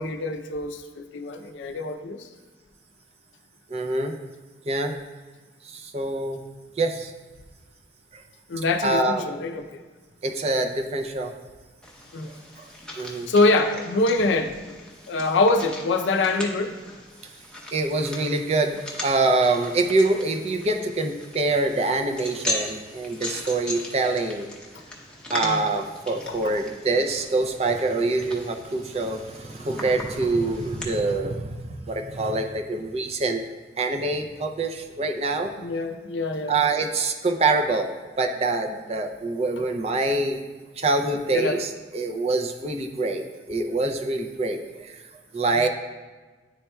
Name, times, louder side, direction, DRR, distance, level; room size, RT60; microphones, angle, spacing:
voice 1, 0.0-2.3 8.5-9.8 12.1-12.3 13.3-14.5 15.1-16.7 25.4-25.6 26.3-26.6 35.6-36.5 41.3-41.6, left 2 dB, 85° left, 7 dB, 0.5 m, -24 dB
voice 2, 3.7-4.2 4.7-5.0 5.6-6.4 6.8-7.1 8.1-8.2 8.8-9.2 10.2-11.3 12.3-12.6 13.0-13.3 17.7-24.5 25.3-33.4 33.8-35.5 36.5-37.9 38.2-40.4 40.8-45.0 45.3-45.7, right 2 dB, 35° right, 4 dB, 0.4 m, -25 dB
sound 1, 11.8-30.8, left 1 dB, 5° left, 0.7 m, -39 dB
10.5 x 4.3 x 2.2 m, 1.3 s
head